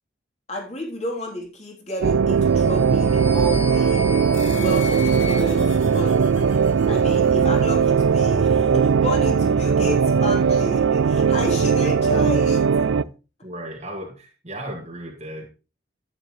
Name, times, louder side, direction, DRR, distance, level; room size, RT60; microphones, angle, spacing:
voice 1, 0.5-4.0 4.5-6.2 6.8-12.7, left 1 dB, 35° left, 0 dB, 3.3 m, -31 dB
sound 1, 2.0-13.0, right 6 dB, 85° right, 0.4 m, -19 dB
sound 2, 2.4-6.7, left 5 dB, 10° left, 1.6 m, -37 dB
sound 3, 4.3-9.2, left 4 dB, 85° left, 4.3 m, -45 dB
voice 2, 13.4-15.5, right 1 dB, 35° right, -1 dB, 1.9 m, -35 dB
10.5 x 9.5 x 3.1 m, 0.31 s
head